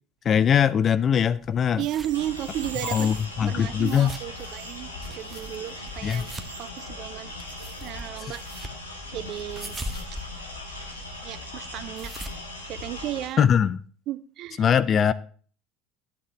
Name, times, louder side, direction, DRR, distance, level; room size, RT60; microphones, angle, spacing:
voice 1, 0.2-1.8 2.9-4.1 6.0-6.3 8.2-8.3 13.4-13.8 14.6-15.1, left 8 dB, 35° left, 16 dB, 0.4 m, -21 dB
sound 1, 1.4-13.3, right 1 dB, 15° right, 1.0 m, -43 dB
voice 2, 1.8-3.1 3.5-4.9 5.2-6.3 6.6-7.3 7.8-8.4 9.1-9.8 10.1-10.2 11.2-12.1 12.7-13.5 14.1-14.6, right 13 dB, 50° right, 18 dB, 0.4 m, -34 dB
sound 2, 1.8-8.2, right 8 dB, 70° right, 0.8 m, -45 dB
sound 3, 2.1-13.3, left 2 dB, 90° left, 1.4 m, -39 dB
9.9 x 8.8 x 3.3 m, 0.44 s
figure-of-eight pair, 65°, 0 cm